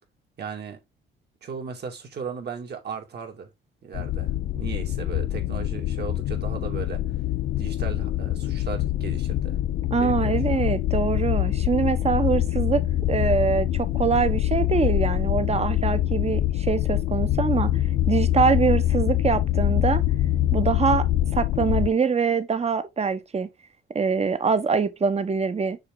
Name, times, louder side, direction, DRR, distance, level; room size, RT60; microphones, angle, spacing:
voice 1, 0.4-0.8 1.4-3.5 3.8-7.0 7.6-9.6 10.0-10.4, right 6 dB, 55° right, 2.7 m, -36 dB
sound 1, 3.9-21.9, left 13 dB, 70° left, 0.5 m, -24 dB
voice 2, 9.9-12.8 13.1-17.7 18.1-20.0 20.5-21.0 21.3-23.5 23.9-25.8, right 5 dB, 30° right, 1.2 m, -24 dB
6.6 x 4.7 x 3.9 m
cardioid pair, 90°, 20 cm